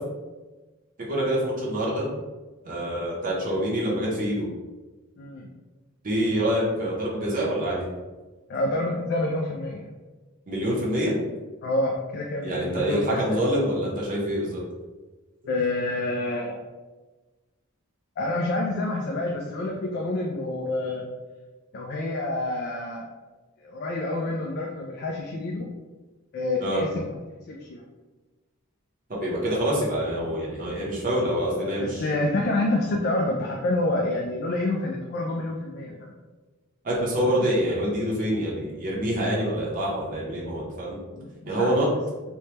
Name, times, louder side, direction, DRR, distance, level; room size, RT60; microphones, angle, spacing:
voice 1, 1.1-2.1 2.7-4.5 6.0-7.9 10.5-11.1 12.4-14.6 26.6-26.8 29.1-32.1 36.8-41.0 41.4-41.9, equal, 40° right, -5 dB, 0.7 m, -26 dB
voice 2, 5.2-5.5 8.5-9.9 11.6-13.4 15.5-16.6 18.2-21.1 21.7-23.1 23.6-25.7 26.3-27.0 27.5-27.8 31.8-36.1 41.1-41.7, left 2 dB, 50° left, 0 dB, 0.3 m, -28 dB
3.1 x 2.1 x 2.9 m, 1.2 s
head